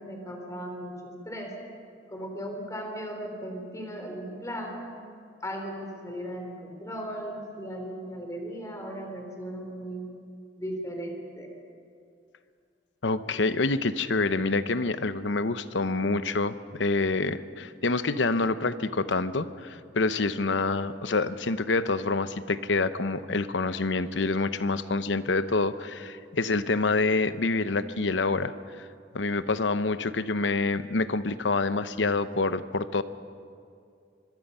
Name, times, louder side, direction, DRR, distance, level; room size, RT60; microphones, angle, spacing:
voice 1, 0.0-1.5 2.1-4.9 5.4-10.0 10.6-11.5, equal, 20° left, 3 dB, 3.6 m, -37 dB
voice 2, 13.0-28.9 29.1-33.0, left 3 dB, 90° left, 12 dB, 0.9 m, -27 dB
24.5 x 22.5 x 5.6 m, 2.3 s
head